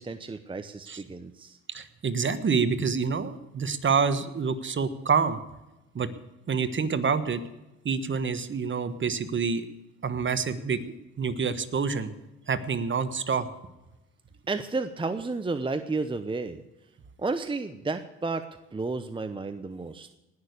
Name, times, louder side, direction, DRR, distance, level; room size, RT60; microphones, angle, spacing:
voice 1, 0.0-1.6 14.5-16.6 17.2-18.5 18.7-20.1, right 3 dB, 15° right, 9 dB, 0.8 m, -32 dB
voice 2, 1.7-5.4 5.9-6.1 6.5-7.4 7.8-9.6 10.0-12.1 12.5-13.5, right 5 dB, 40° right, 11 dB, 1.4 m, -27 dB
19.0 x 6.6 x 8.2 m, 1.0 s
cardioid pair, 90°, 30 cm